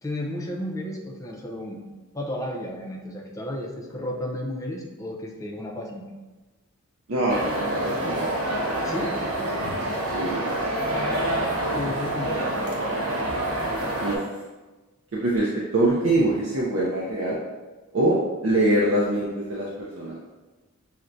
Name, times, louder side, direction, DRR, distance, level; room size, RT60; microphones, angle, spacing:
voice 1, 0.0-1.8 2.1-6.1 8.8-9.1 11.7-12.6, left 1 dB, 15° left, -1 dB, 0.4 m, -33 dB
voice 2, 7.1-8.3 10.1-11.1 14.0-14.2 15.1-17.4 17.9-20.2, right 1 dB, 60° right, -5 dB, 0.5 m, -24 dB
sound 1, 7.3-14.2, right 1 dB, 80° right, 0.9 m, -27 dB
5.7 x 2.1 x 2.5 m, 1.2 s
head